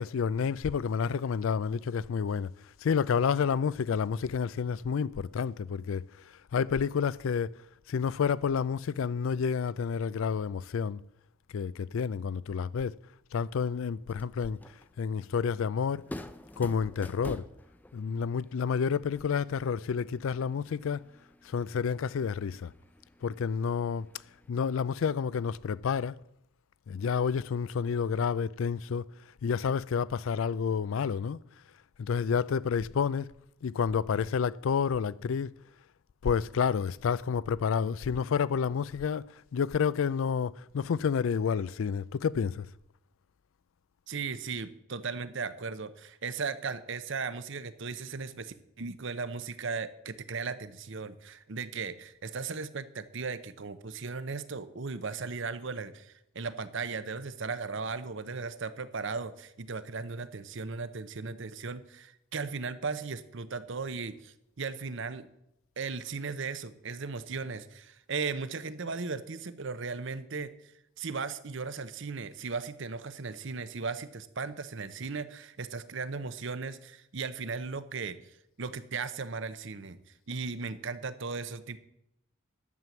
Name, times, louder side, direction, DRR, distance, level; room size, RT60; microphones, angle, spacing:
voice 1, 0.0-2.5 2.8-6.1 6.5-7.6 7.9-11.0 11.5-13.0 13.3-14.6 15.0-16.1 16.6-17.4 17.9-21.1 21.4-22.7 23.2-24.1 24.5-26.2 26.9-29.1 29.4-31.4 32.0-33.3 33.6-35.5 36.2-42.7, left 6 dB, 65° left, 0.4 m, -29 dB
sound 1, 13.9-24.5, left 1 dB, 10° left, 0.4 m, -49 dB
voice 2, 44.1-65.3 65.8-80.0 80.3-81.8, right 4 dB, 60° right, 0.8 m, -37 dB
11.0 x 7.6 x 7.1 m
head